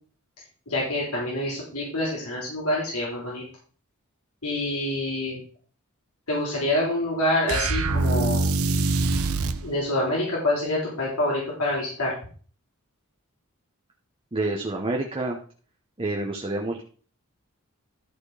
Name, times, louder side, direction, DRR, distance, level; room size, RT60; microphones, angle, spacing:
voice 1, 0.7-3.4 4.4-5.4 6.3-8.5 9.6-12.1, left 1 dB, 85° left, -5 dB, 4.4 m, -26 dB
sound 1, 7.5-9.6, right 3 dB, 80° right, 0.9 m, -24 dB
voice 2, 14.3-15.4 16.0-16.8, right 2 dB, 25° right, 0 dB, 1.1 m, -28 dB
13.5 x 4.5 x 5.0 m, 0.43 s
head